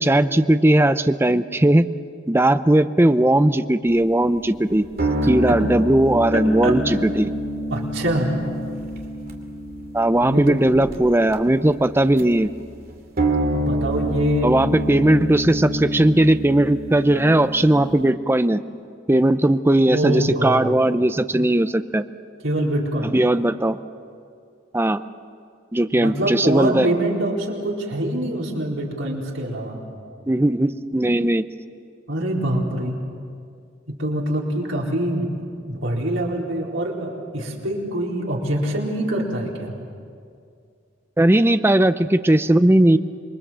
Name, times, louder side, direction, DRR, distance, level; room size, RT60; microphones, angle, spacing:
voice 1, 0.0-1.9 2.3-4.8 5.2-7.3 9.9-12.5 14.4-18.6 19.1-22.0 23.0-23.8 24.7-25.0 25.7-26.9 30.3-31.4 41.2-43.0, right 1 dB, 10° right, 11 dB, 0.6 m, -18 dB
sound 1, 3.9-12.5 13.2-18.1, equal, 50° right, 2.6 m, -27 dB
voice 2, 6.3-6.8 7.7-8.3 10.2-10.6 13.5-14.6 19.9-20.8 22.4-23.1 25.9-29.8 32.1-33.0 33.9-35.3 35.7-39.7, right 1 dB, 90° right, -2 dB, 4.3 m, -24 dB
27.0 x 22.0 x 7.5 m, 2.3 s
head